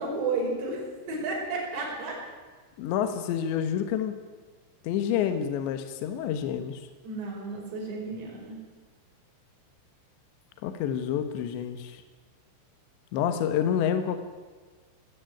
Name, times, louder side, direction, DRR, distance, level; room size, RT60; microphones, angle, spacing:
voice 1, 0.0-2.2 7.0-8.6, right 3 dB, 60° right, -2 dB, 7.2 m, -32 dB
voice 2, 2.8-4.2 4.8-6.8 10.6-12.0 13.1-14.2, left 9 dB, 70° left, 8 dB, 3.2 m, -28 dB
18.5 x 16.5 x 9.2 m, 1.4 s
omnidirectional pair, 5.8 m